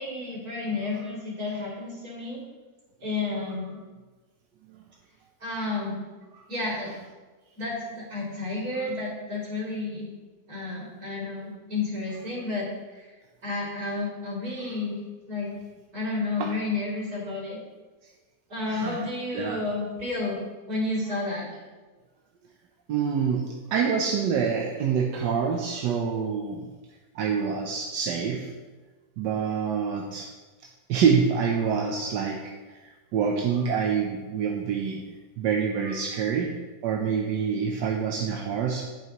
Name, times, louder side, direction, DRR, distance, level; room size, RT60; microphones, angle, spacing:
voice 1, 0.0-2.4 3.0-3.8 5.4-6.0 6.5-7.0 7.6-10.1 10.5-13.1 13.4-15.0 15.3-15.5 15.9-17.6 18.5-20.4 20.7-21.5, left 3 dB, 60° right, -5 dB, 3.5 m, -31 dB
voice 2, 18.7-19.0 19.3-19.6 22.9-26.7 27.1-28.5 29.2-30.3 30.9-35.0 35.4-36.5 36.8-38.8, right 6 dB, 85° right, 1 dB, 1.4 m, -26 dB
10.5 x 8.6 x 3.0 m, 1.3 s
omnidirectional pair, 1.8 m